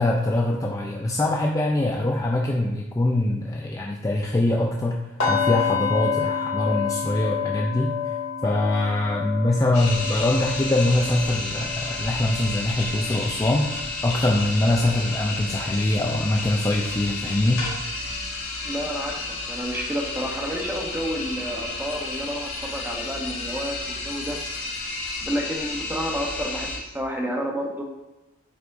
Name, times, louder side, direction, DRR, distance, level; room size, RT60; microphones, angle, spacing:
voice 1, 0.0-7.9 8.4-18.2, left 1 dB, 15° left, -1 dB, 0.4 m, -23 dB
sound 1, 5.2-15.1 15.5-15.7 16.2-16.3, left 7 dB, 90° left, 2.2 m, -30 dB
sound 2, 9.7-26.8, left 2 dB, 65° left, 2.1 m, -32 dB
voice 2, 18.6-24.8 25.2-27.8, equal, 10° right, 0 dB, 0.9 m, -30 dB
8.3 x 4.8 x 2.6 m, 1.0 s
head